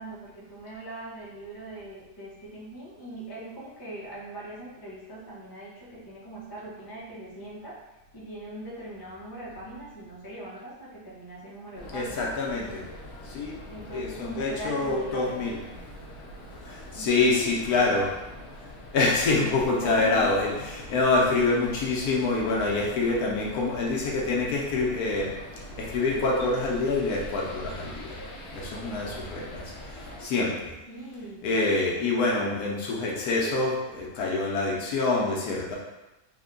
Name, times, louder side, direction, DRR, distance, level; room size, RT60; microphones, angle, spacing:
voice 1, 0.0-7.8 8.1-12.3 13.7-15.8 16.9-17.6 19.3-20.3 30.7-31.5, right 1 dB, 25° left, -6 dB, 0.4 m, -40 dB
sound 1, 11.7-30.3, left 1 dB, 55° left, 0.8 m, -43 dB
voice 2, 11.9-12.8 13.2-13.6 13.9-15.6 16.6-18.1 18.9-25.3 25.8-28.2 28.5-29.6 30.2-30.7 31.4-35.7, left 3 dB, 75° left, -3 dB, 1.2 m, -26 dB
3.4 x 2.2 x 3.7 m, 1.0 s
omnidirectional pair, 1.7 m